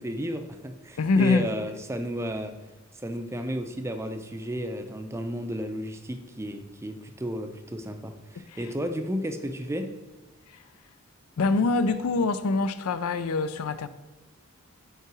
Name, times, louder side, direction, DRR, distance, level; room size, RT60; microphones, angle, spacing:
voice 1, 0.0-2.5 2.9-9.9, equal, 10° right, 0.5 m, -33 dB
voice 2, 1.0-1.5 8.5-8.6 10.5-10.6 11.4-13.9, left 3 dB, 85° left, 0.5 m, -24 dB
5.6 x 4.8 x 6.1 m
head